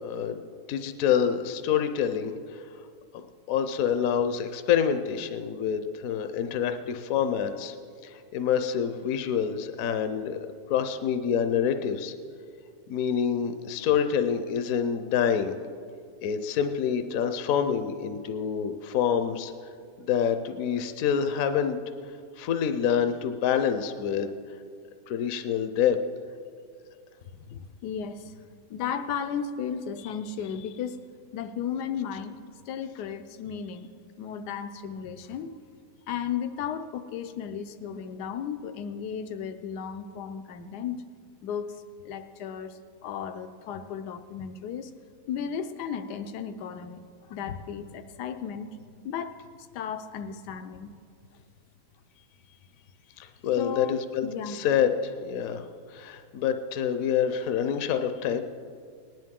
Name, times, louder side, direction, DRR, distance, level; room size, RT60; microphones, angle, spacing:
voice 1, 0.0-2.7 3.5-7.7 8.0-10.4 10.7-12.1 12.9-15.6 16.2-19.5 20.0-21.8 22.4-24.3 25.1-26.0 53.2-58.4, left 8 dB, 65° left, 8 dB, 1.0 m, -27 dB
voice 2, 27.5-28.4 28.7-31.0 31.3-32.4 32.7-33.9 34.2-35.5 36.1-41.0 41.4-41.7 42.0-44.9 45.3-48.8 49.0-49.4 49.7-51.0 53.6-54.6, left 7 dB, 85° left, 9 dB, 1.3 m, -34 dB
19.5 x 10.5 x 3.7 m, 2.2 s
omnidirectional pair, 1.7 m